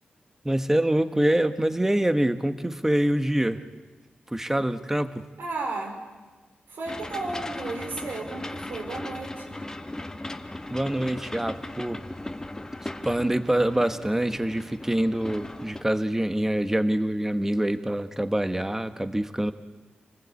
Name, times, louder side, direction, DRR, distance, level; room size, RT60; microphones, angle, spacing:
voice 1, 0.4-3.6 4.3-5.3 10.7-12.0 12.8-19.5, right 1 dB, 10° right, 9 dB, 1.3 m, -25 dB
voice 2, 5.4-6.0 6.7-9.6, right 3 dB, 85° right, 1 dB, 4.0 m, -34 dB
sound 1, 6.8-15.8, left 1 dB, 15° left, 1.3 m, -38 dB
28.5 x 20.5 x 8.3 m, 1.3 s
wide cardioid pair, 115°, 4 cm